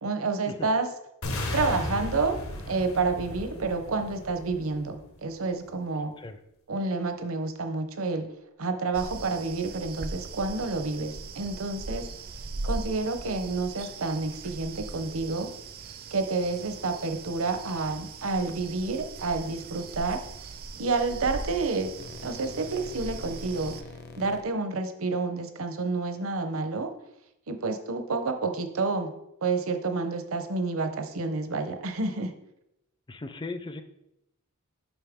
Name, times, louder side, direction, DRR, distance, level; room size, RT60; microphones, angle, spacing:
voice 1, 0.0-0.9 1.5-2.4 2.7-6.1 6.7-8.3 8.6-12.1 12.6-15.5 16.1-20.2 20.8-21.9 22.2-23.8 24.2-26.9 27.5-29.1 29.4-32.3, right 3 dB, 70° right, 7 dB, 0.8 m, -29 dB
sound 1, 1.2-5.2, left 1 dB, 75° left, 1.3 m, -35 dB
sound 2, 8.9-23.8, right 3 dB, 45° right, 0.5 m, -40 dB
sound 3, 18.3-18.6 20.3-20.6 21.4-24.4, left 3 dB, 50° left, 0.8 m, -46 dB
voice 2, 33.1-33.8, left 3 dB, 20° left, 9 dB, 0.5 m, -37 dB
7.1 x 5.4 x 3.6 m, 0.85 s
head